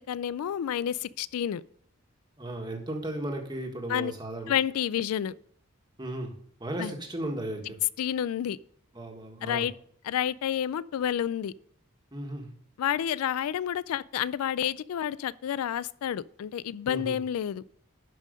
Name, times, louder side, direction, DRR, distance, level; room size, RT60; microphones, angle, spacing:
voice 1, 0.1-1.6 3.9-4.1 4.5-5.3 6.8-6.9 8.0-8.6 9.4-9.7 10.0-11.5 12.8-17.6, left 9 dB, 90° left, 0.3 m, -29 dB
voice 2, 2.4-4.5 6.0-6.3 6.6-7.8 8.9-9.7 12.1-12.5 16.9-17.2, right 1 dB, 20° right, 1.5 m, -35 dB
11.5 x 5.5 x 5.1 m
head